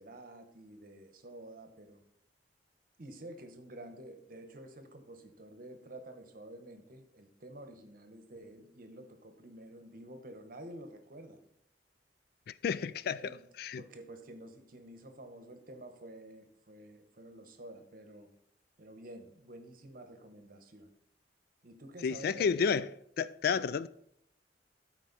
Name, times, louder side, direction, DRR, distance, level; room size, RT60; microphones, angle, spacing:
voice 1, 0.0-2.0 3.0-11.4 12.7-13.4 13.8-18.3 18.8-20.9 21.6-22.5, right 1 dB, 50° right, 1.0 m, -50 dB
voice 2, 12.6-13.8 22.0-22.9 23.2-23.9, left 6 dB, 55° left, 0.3 m, -31 dB
12.5 x 4.5 x 4.0 m
head